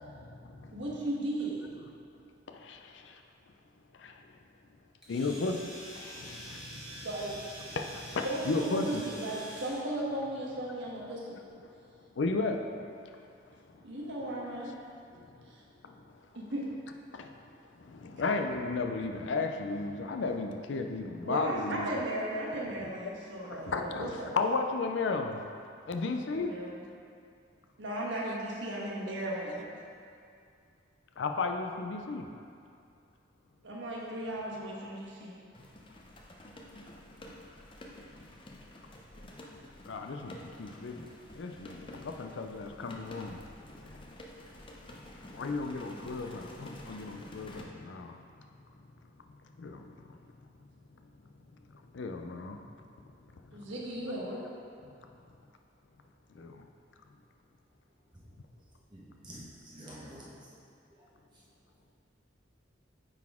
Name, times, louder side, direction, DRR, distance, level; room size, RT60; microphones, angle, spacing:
voice 1, 0.0-0.8 2.5-3.2 4.0-4.2 5.1-7.1 7.7-9.1 12.2-13.3 13.5-13.8 14.3-14.4 15.1-15.4 15.8-16.2 17.1-17.3 17.8-21.9 23.4-25.5 25.9-26.5 31.2-32.3 39.9-43.5 43.9-44.0 45.3-48.2 49.6-49.9 51.9-52.6 56.3-56.7, left 3 dB, 75° left, 5 dB, 0.5 m, -35 dB
voice 2, 0.7-1.6 7.0-7.4 8.2-11.4 13.8-14.7 15.5-15.6 16.3-16.7 21.2-24.4 26.2-26.8 27.8-29.6 33.6-35.3 53.5-54.5, right 1 dB, 70° right, -4 dB, 1.2 m, -36 dB
Domestic sounds home sounds, 5.0-9.9, right 1 dB, 5° right, 1.5 m, -46 dB
sound 1, 35.5-47.6, left 1 dB, 25° left, 0.6 m, -50 dB
voice 3, 58.9-60.3 61.0-61.1 61.3-61.4, right 1 dB, 25° right, -7 dB, 1.1 m, -49 dB
8.9 x 4.1 x 3.6 m, 2.4 s
head